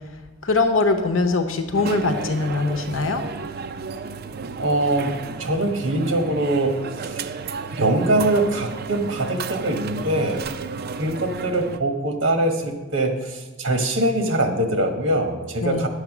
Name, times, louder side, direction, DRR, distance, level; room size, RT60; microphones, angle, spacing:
voice 1, 0.4-3.2 15.6-15.9, left 3 dB, 80° left, 7 dB, 0.9 m, -22 dB
sound 1, 1.7-11.8, right 5 dB, 50° right, 0.5 m, -33 dB
voice 2, 4.6-7.2 7.7-10.4 11.0-15.9, right 1 dB, 70° right, 4 dB, 1.5 m, -23 dB
9.9 x 7.3 x 6.1 m, 1.2 s
head